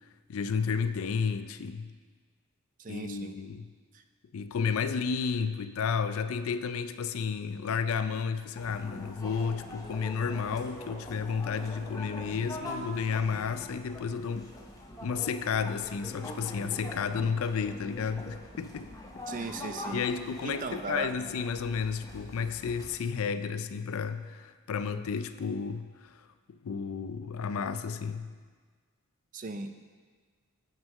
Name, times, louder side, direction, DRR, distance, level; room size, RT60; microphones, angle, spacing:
voice 1, 0.3-1.9 2.9-3.7 4.3-14.5 15.0-18.9 19.9-26.1 26.6-28.3, left 6 dB, 70° left, 11 dB, 0.4 m, -32 dB
voice 2, 2.8-3.3 3.9-4.0 19.3-20.0 20.4-21.1 29.3-29.8, right 3 dB, 35° right, 8 dB, 0.4 m, -37 dB
sound 1, 8.5-23.0, left 1 dB, 15° left, 0.8 m, -44 dB
7.5 x 5.9 x 5.4 m, 1.5 s
head